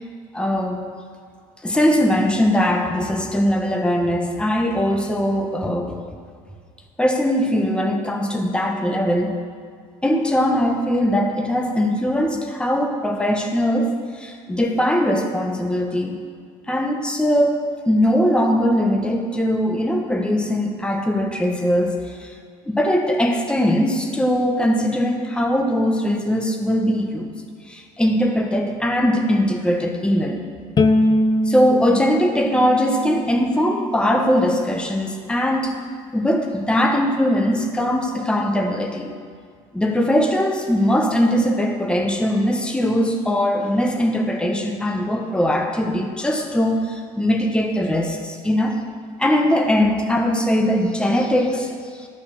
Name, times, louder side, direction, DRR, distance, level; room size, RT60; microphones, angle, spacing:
voice 1, 0.3-0.8 1.6-6.0 7.0-9.3 10.0-16.2 16.7-17.6 17.9-21.9 22.7-27.3 27.7-30.4 31.5-35.7 36.1-39.1 39.7-46.8 47.2-48.7 49.2-51.9, equal, 5° left, 2 dB, 1.2 m, -20 dB
Bowed string instrument, 30.8-34.0, left 1 dB, 35° left, 0.8 m, -22 dB
12.0 x 5.7 x 6.5 m, 2.1 s
supercardioid pair, 80°, 13 cm